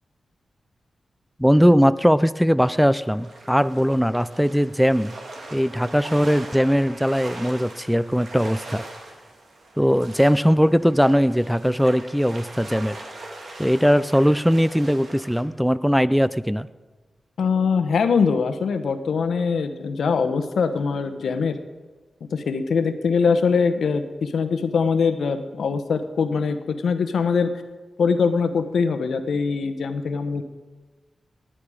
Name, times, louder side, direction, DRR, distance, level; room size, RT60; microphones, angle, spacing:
voice 1, 1.4-5.2 5.5-8.8 9.8-13.0 13.6-16.7, equal, ahead, 16 dB, 0.4 m, -20 dB
sound 1, 3.0-15.4, right 2 dB, 65° right, 2.4 m, -41 dB
voice 2, 17.4-21.6 22.3-27.5 28.0-30.4, left 5 dB, 85° left, 9 dB, 0.9 m, -22 dB
19.0 x 8.9 x 5.0 m, 1.3 s
wide cardioid pair, 85°, 0 cm